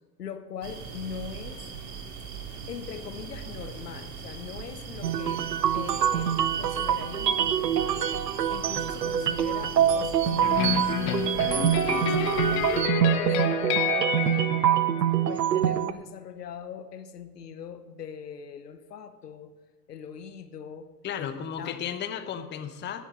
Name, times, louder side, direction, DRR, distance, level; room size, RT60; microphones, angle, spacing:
voice 1, 0.2-1.6 2.7-5.4 5.7-8.0 8.5-12.7 13.2-19.5 19.9-20.9 21.2-21.8, left 7 dB, 75° left, 10 dB, 1.1 m, -41 dB
sound 1, 0.6-12.8, right 6 dB, 35° right, 2.4 m, -40 dB
sound 2, 5.0-15.9, right 9 dB, 80° right, 0.8 m, -25 dB
sound 3, 10.4-15.5, left 9 dB, 45° left, 1.3 m, -29 dB
voice 2, 21.0-23.0, left 8 dB, 20° left, 8 dB, 1.0 m, -34 dB
16.0 x 9.2 x 5.3 m, 1.2 s
figure-of-eight pair, 95°, 48 cm